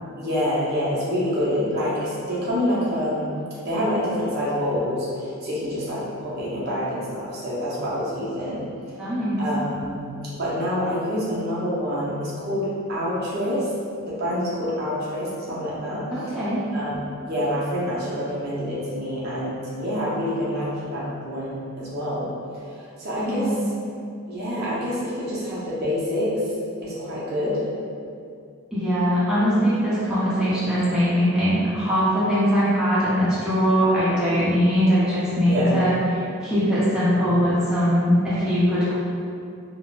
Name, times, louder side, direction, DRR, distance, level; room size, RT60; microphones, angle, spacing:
voice 1, 0.2-3.3 3.6-5.1 5.4-8.6 9.4-13.7 14.1-16.0 16.7-22.3 23.0-23.5 24.3-26.3 26.8-27.6 35.5-35.9, equal, 45° right, -8 dB, 0.6 m, -27 dB
voice 2, 9.0-9.4 16.1-16.6 23.2-23.5 28.7-38.9, equal, 5° right, -13 dB, 0.6 m, -21 dB
3.6 x 2.0 x 2.3 m, 2.4 s
head